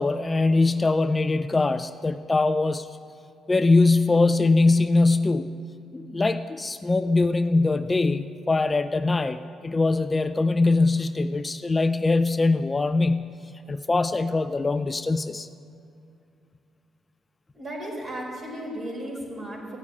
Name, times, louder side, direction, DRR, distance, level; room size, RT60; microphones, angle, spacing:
voice 1, 0.0-2.9 3.5-5.5 5.9-13.3 13.7-15.5, left 3 dB, 25° left, 10 dB, 0.4 m, -22 dB
voice 2, 17.5-19.8, right 1 dB, 45° right, -1 dB, 4.6 m, -35 dB
15.5 x 7.2 x 9.5 m, 2.5 s
cardioid pair, 90°, 0 cm